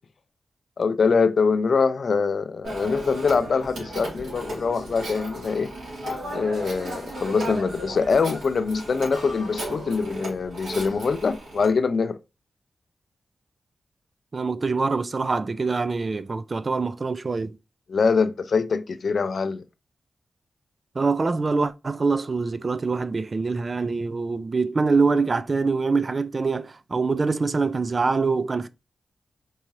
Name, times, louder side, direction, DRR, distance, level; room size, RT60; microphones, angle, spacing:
voice 1, 0.8-5.7 6.3-12.2 17.9-19.6, left 5 dB, 65° left, 0.4 m, -23 dB
Telephone, 2.6-11.7, right 1 dB, 90° right, 2.0 m, -35 dB
voice 2, 14.3-17.6 21.0-28.7, right 4 dB, 45° right, 0.4 m, -24 dB
4.5 x 2.7 x 3.1 m
cardioid pair, 60°, 0 cm